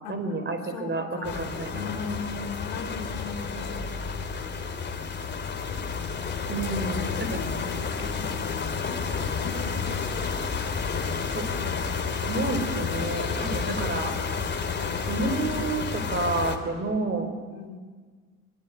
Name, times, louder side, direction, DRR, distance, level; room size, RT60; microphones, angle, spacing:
voice 1, 0.1-1.9 6.5-7.4 11.3-11.4 12.2-14.1 15.1-17.3, right 2 dB, 25° right, 8 dB, 5.1 m, -30 dB
voice 2, 0.6-3.9 4.4-4.6 4.9-5.0 5.9-6.6 6.9-9.8 10.7-12.8 13.5-14.1 14.8-15.3 17.5-17.8, left 5 dB, 55° left, 2 dB, 3.9 m, -40 dB
sound 1, 1.2-16.6, left 5 dB, 25° left, 3.3 m, -30 dB
23.0 x 22.0 x 9.5 m, 1.5 s
hypercardioid pair, 80°, 44 cm